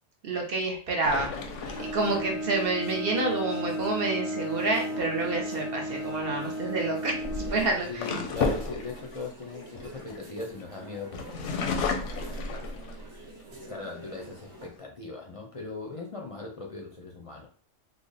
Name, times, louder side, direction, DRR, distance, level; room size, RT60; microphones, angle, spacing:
voice 1, 0.2-1.3 1.8-7.9, right 3 dB, 55° right, 0 dB, 0.9 m, -28 dB
sound 1, 1.0-2.6 5.6-5.9 6.9-10.6 11.1-13.3 13.8-13.9 14.2-14.8, left 4 dB, 85° left, 0.9 m, -33 dB
sound 2, 1.3-14.7, right 2 dB, 70° right, 1.3 m, -47 dB
Bowed string instrument, 1.6-8.3, equal, 15° right, 0.7 m, -34 dB
voice 2, 7.9-12.8 13.5-17.5, left 3 dB, 40° left, 0 dB, 0.5 m, -40 dB
3.4 x 2.0 x 3.9 m, 0.43 s
omnidirectional pair, 1.2 m